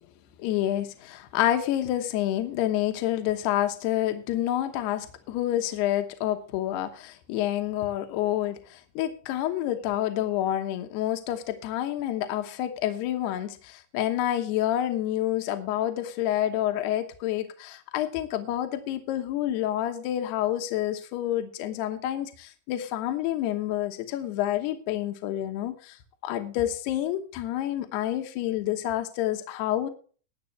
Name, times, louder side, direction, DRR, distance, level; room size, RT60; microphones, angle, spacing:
voice 1, 0.4-26.0 26.2-29.9, left 12 dB, 75° left, 3.1 m, -28 dB
21.5 x 7.6 x 3.3 m
omnidirectional pair, 5.2 m